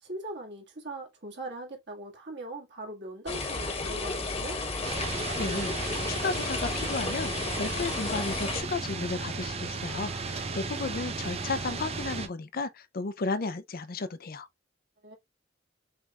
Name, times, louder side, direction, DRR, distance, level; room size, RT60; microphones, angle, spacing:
voice 1, 0.0-4.6 15.0-15.2, right 1 dB, 60° right, 2.0 m, -40 dB
sound 1, 3.3-8.6, left 3 dB, 35° left, 1.2 m, -33 dB
sound 2, 4.8-12.3, right 4 dB, 30° right, 0.6 m, -35 dB
voice 2, 5.2-14.5, left 3 dB, 50° left, 0.6 m, -34 dB
6.2 x 3.3 x 2.4 m
head